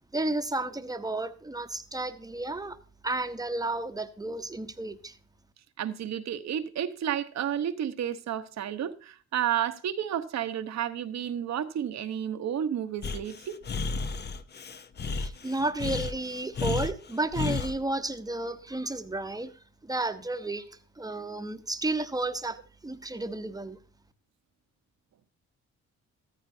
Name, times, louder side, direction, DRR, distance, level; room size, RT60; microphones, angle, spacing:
voice 1, 0.1-2.8 3.0-5.2 15.1-19.5 19.8-22.6 22.8-23.8, right 2 dB, 10° right, 1.0 m, -32 dB
voice 2, 5.8-13.6, right 9 dB, 60° right, 1.1 m, -31 dB
Breathing, 13.0-17.8, left 4 dB, 35° left, 0.7 m, -32 dB
14.0 x 14.0 x 2.7 m
cardioid pair, 90°, 30 cm